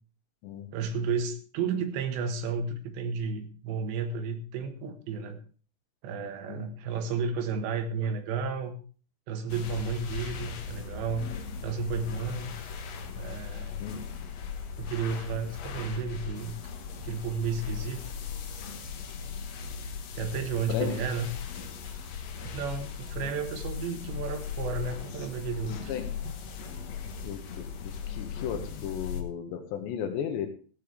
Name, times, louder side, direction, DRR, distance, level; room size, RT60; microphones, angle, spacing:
voice 1, 0.7-5.4 6.0-8.8 9.3-11.3 11.6-12.6 13.2-13.8 14.8-16.5 17.0-18.1 20.1-21.3 22.5-26.0 26.2-26.4 29.1-29.2, right 5 dB, 85° right, 6 dB, 3.8 m, -32 dB
sound 1, 9.5-29.2, left 6 dB, 70° left, 1.6 m, -38 dB
voice 2, 27.2-30.5, left 8 dB, 90° left, 6 dB, 3.7 m, -35 dB
15.0 x 11.5 x 3.4 m, 0.39 s
omnidirectional pair, 4.9 m